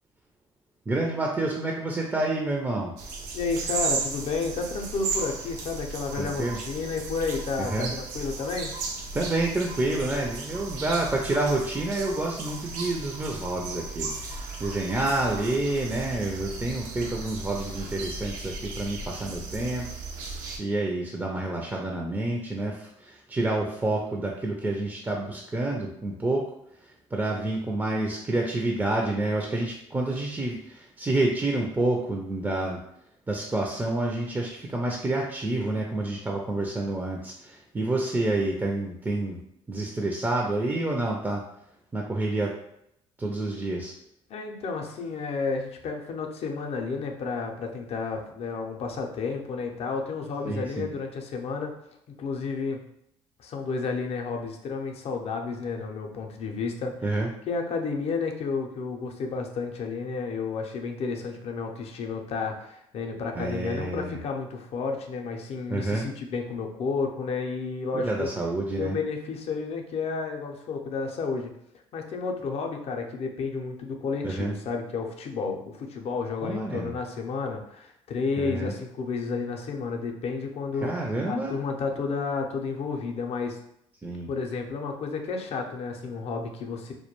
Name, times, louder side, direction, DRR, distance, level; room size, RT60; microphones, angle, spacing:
voice 1, 0.9-2.9 6.2-6.6 7.6-7.9 9.1-19.9 20.6-26.5 27.1-32.8 33.3-39.4 39.7-41.4 41.9-42.5 43.2-43.9 50.4-50.9 57.0-57.3 63.3-64.2 65.7-66.1 67.9-69.0 74.2-74.6 76.4-76.9 78.4-78.7 80.8-81.6 84.0-84.3, right 2 dB, 15° right, 0 dB, 0.4 m, -28 dB
sound 1, 3.0-20.6, right 4 dB, 80° right, 0.4 m, -35 dB
voice 2, 3.3-8.7 44.3-51.7 52.2-52.8 53.4-68.3 68.8-71.5 71.9-80.9 81.3-83.6 84.3-86.9, left 4 dB, 55° left, 2 dB, 0.5 m, -31 dB
2.2 x 2.1 x 2.9 m, 0.77 s
supercardioid pair, 70°, 13 cm